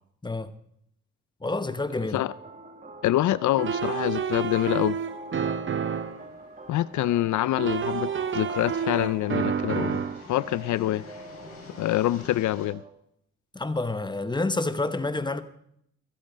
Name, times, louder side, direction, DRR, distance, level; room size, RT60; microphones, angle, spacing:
voice 1, 1.4-2.2 13.5-15.4, left 2 dB, 15° left, 1.0 m, -28 dB
sound 1, 2.3-12.9, right 2 dB, 25° right, 1.9 m, -45 dB
voice 2, 3.0-5.0 6.7-10.0 10.3-11.0 11.8-12.8, left 14 dB, 75° left, 0.5 m, -25 dB
sound 2, 3.6-6.3 7.6-10.2, right 7 dB, 40° right, 0.9 m, -29 dB
sound 3, 5.4-12.6, left 3 dB, 55° left, 6.0 m, -50 dB
23.0 x 7.7 x 5.0 m
cardioid pair, 90°, 30 cm